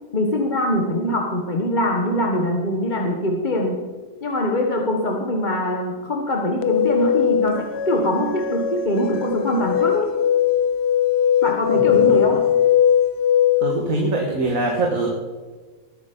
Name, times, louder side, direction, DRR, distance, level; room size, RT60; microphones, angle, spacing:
voice 1, 0.1-3.8 4.2-10.1 11.4-12.5, left 1 dB, 35° left, 1 dB, 1.3 m, -23 dB
sound 1, 6.6-13.8, left 9 dB, 60° left, 0.8 m, -20 dB
voice 2, 13.6-15.1, right 2 dB, 80° right, 1 dB, 2.0 m, -22 dB
20.0 x 8.6 x 5.3 m, 1.4 s
omnidirectional pair, 1.4 m